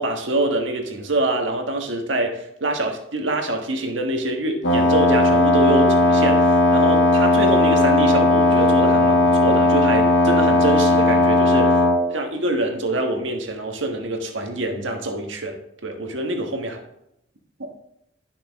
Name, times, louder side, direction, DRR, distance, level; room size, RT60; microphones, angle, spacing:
voice 1, 0.0-11.7 12.1-15.6 15.8-16.8, right 2 dB, 80° right, 4 dB, 1.4 m, -25 dB
Wind instrument woodwind instrument, 4.6-12.1, left 2 dB, 80° left, 1.5 m, -16 dB
12.0 x 5.8 x 3.6 m, 0.80 s
head